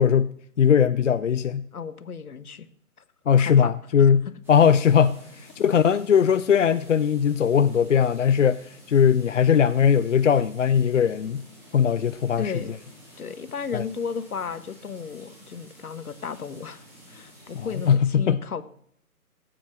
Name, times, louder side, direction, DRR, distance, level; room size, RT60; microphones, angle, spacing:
voice 1, 0.0-1.6 3.3-11.4 11.7-12.5 13.7-13.8 17.5-18.4, left 7 dB, 55° left, 0.5 m, -20 dB
voice 2, 1.7-2.7 3.4-3.7 12.4-12.7 13.2-18.6, left 6 dB, 70° left, 1.3 m, -34 dB
sound 1, 4.4-17.9, equal, 5° right, 3.3 m, -50 dB
14.0 x 8.6 x 6.4 m
figure-of-eight pair, 150°, 45 cm